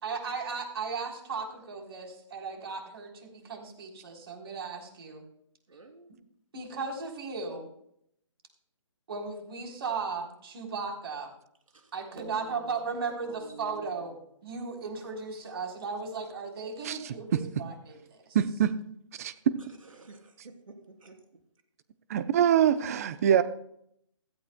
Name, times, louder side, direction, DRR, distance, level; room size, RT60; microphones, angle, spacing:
voice 1, 0.0-5.2 6.5-7.7 9.1-11.3 11.9-14.1 14.4-18.4 22.9-23.1 23.3-23.4, right 4 dB, 50° right, 3.7 m, -36 dB
voice 2, 5.7-6.1 11.7-12.8 13.2-14.2 19.6-21.2, right 3 dB, 80° right, 3.1 m, -50 dB
voice 3, 16.8-17.1 18.3-18.7 19.2-19.3 22.1-23.4, right 9 dB, 30° right, 0.7 m, -24 dB
16.0 x 15.0 x 2.2 m
hypercardioid pair, 155°, 17 cm